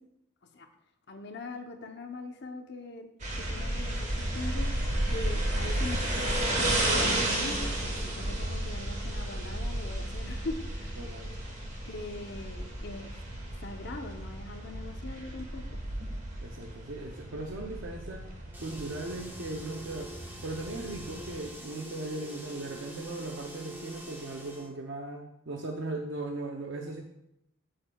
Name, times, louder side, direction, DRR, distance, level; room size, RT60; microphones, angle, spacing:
voice 1, 1.1-3.1 3.4-4.7 5.1-11.0 11.8-13.2 13.6-15.8, left 2 dB, 50° left, 5 dB, 0.8 m, -41 dB
sound 1, 3.2-21.5, right 1 dB, 35° right, 1.3 m, -33 dB
voice 2, 11.0-11.3 16.4-18.3 18.6-20.1 20.4-27.0, right 2 dB, 60° right, 2 dB, 0.6 m, -38 dB
sound 2, 18.5-24.7, right 1 dB, 10° right, 1.0 m, -45 dB
8.7 x 7.6 x 2.3 m, 0.81 s
head